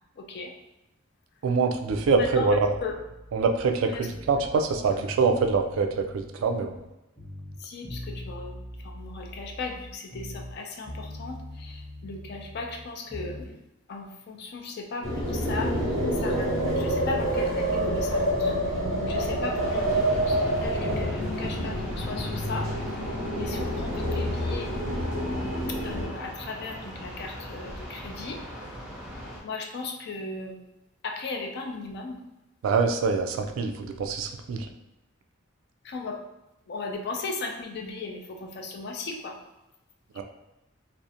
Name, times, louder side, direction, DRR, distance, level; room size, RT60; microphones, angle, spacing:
voice 1, 0.2-0.5 2.2-2.9 3.9-4.1 4.9-5.0 7.6-8.5 8.8-13.6 13.9-22.7 23.3-24.7 25.7-28.4 29.4-30.6 31.0-32.2 35.8-36.2 36.7-39.4, left 3 dB, 55° left, 2 dB, 0.4 m, -37 dB
voice 2, 1.4-2.8 3.3-6.8 32.6-34.7 40.2-40.3, right 4 dB, 70° right, 7 dB, 0.3 m, -25 dB
sound 1, 1.8-4.5 4.8-6.9 7.2-10.6 10.8-13.5, left 1 dB, 20° left, 0.8 m, -42 dB
sound 2, 15.0-26.1, equal, 75° left, 0.8 m, -27 dB
sound 3, 19.5-29.4, equal, 5° right, 0.5 m, -40 dB
2.4 x 2.0 x 2.7 m, 0.96 s
head